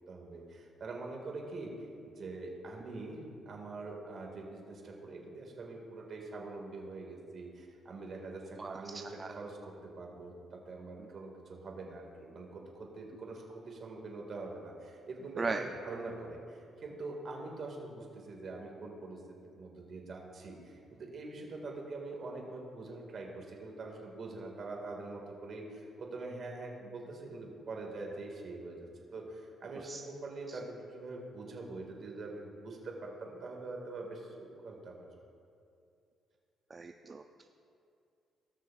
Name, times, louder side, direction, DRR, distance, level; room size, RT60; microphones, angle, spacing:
voice 1, 0.1-35.1, right 3 dB, 55° right, 0 dB, 1.9 m, -44 dB
voice 2, 36.7-37.4, right 4 dB, 30° right, 5 dB, 0.4 m, -37 dB
18.5 x 6.3 x 2.4 m, 2.5 s
cardioid pair, 90°, 0 cm